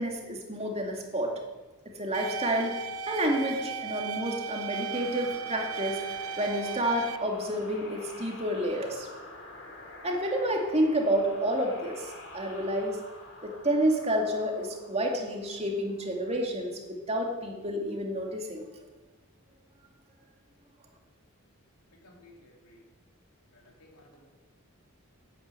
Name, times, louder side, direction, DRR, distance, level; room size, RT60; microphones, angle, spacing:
voice 1, 0.0-1.4 1.9-2.8 3.1-6.0 6.4-9.1 10.0-13.0 13.4-18.7, right 1 dB, 30° right, 1 dB, 2.3 m, -29 dB
sound 1, 2.1-7.2, right 6 dB, 75° right, 0.7 m, -36 dB
sound 2, 4.7-16.0, left 2 dB, 60° left, 3.2 m, -48 dB
voice 2, 21.9-22.8 23.5-24.3, left 1 dB, 85° left, 0 dB, 3.2 m, -56 dB
12.0 x 9.6 x 8.3 m, 1.2 s
head